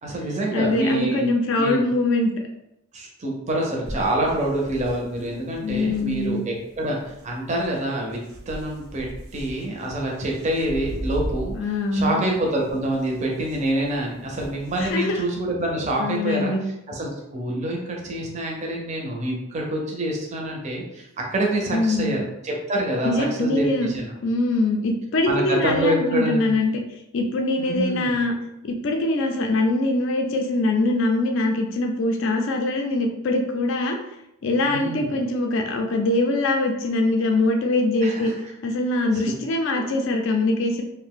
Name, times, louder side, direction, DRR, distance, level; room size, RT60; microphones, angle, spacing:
voice 1, 0.0-1.2 1.6-1.8 2.9-8.2 8.5-9.1 9.3-16.5 16.9-24.1 25.3-26.5 27.6-28.1 34.6-35.1 38.0-38.3 39.1-39.3 39.7-39.8, right 1 dB, 30° right, -1 dB, 0.5 m, -26 dB
voice 2, 0.5-2.5 5.6-6.4 11.5-12.2 14.8-15.2 16.0-16.6 21.7-22.2 23.0-23.9 24.2-26.8 27.1-28.3 28.6-34.0 34.4-38.3 38.6-40.8, left 2 dB, 55° left, 3 dB, 0.4 m, -23 dB
sound 1, 3.8-15.0, right 1 dB, 80° right, 0.5 m, -38 dB
2.6 x 2.1 x 3.5 m, 0.85 s
head